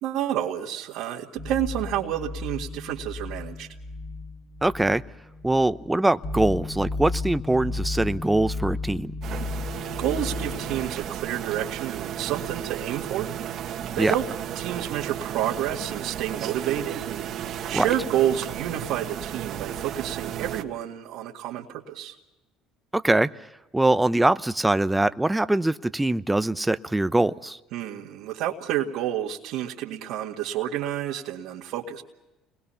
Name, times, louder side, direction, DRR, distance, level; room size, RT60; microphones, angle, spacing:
voice 1, 0.0-3.7 10.0-14.2 14.6-22.1 27.7-32.0, right 11 dB, 75° right, -4 dB, 2.0 m, -29 dB
sound 1, 1.4-10.8, left 3 dB, 45° left, 5.6 m, -34 dB
voice 2, 4.6-5.0 5.4-9.1 14.0-14.1 17.7-17.9 22.9-23.3 23.7-27.6, right 2 dB, 10° right, 13 dB, 0.9 m, -23 dB
sound 2, 9.2-20.6, right 10 dB, 55° right, 1.7 m, -34 dB
30.0 x 21.5 x 5.8 m, 1.0 s
supercardioid pair, 90°, 0 cm